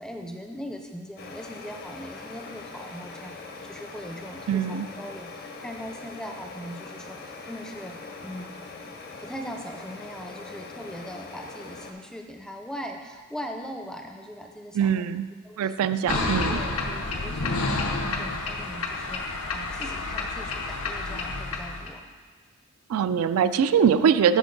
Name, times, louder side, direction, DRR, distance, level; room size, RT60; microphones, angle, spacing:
voice 1, 0.0-3.4 3.6-8.6 9.2-15.0 15.4-15.8 16.1-22.0, equal, 5° left, 3 dB, 0.4 m, -40 dB
sound 1, 1.2-11.9, left 3 dB, 45° left, 0.6 m, -42 dB
voice 2, 4.5-4.9 14.7-15.3 15.6-16.6 22.9-24.4, right 7 dB, 85° right, 13 dB, 0.3 m, -22 dB
sound 2, 16.1-21.9, left 3 dB, 85° left, 0.8 m, -29 dB
11.0 x 4.5 x 3.8 m, 1.6 s
head